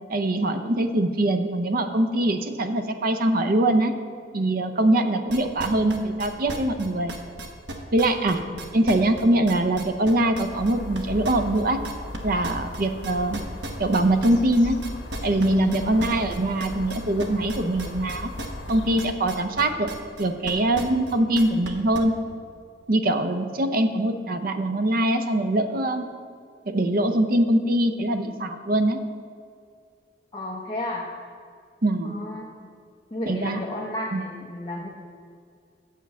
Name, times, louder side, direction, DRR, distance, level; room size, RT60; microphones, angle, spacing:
voice 1, 0.1-3.9 4.3-7.1 7.9-8.4 8.7-11.8 12.2-13.4 13.8-14.8 15.2-18.3 18.7-19.9 20.2-22.1 22.9-26.1 26.7-29.0 31.8-32.2 33.3-33.6 34.1-34.2, right 1 dB, 50° right, 8 dB, 0.6 m, -23 dB
sound 1, 5.3-12.2 12.4-22.0, right 2 dB, 70° right, 1.0 m, -36 dB
sound 2, 10.5-19.0, left 1 dB, 80° left, 0.9 m, -38 dB
voice 2, 30.3-31.1 32.0-32.5 33.1-34.9, left 1 dB, 25° left, -3 dB, 0.8 m, -32 dB
8.3 x 4.6 x 7.3 m, 2.3 s
head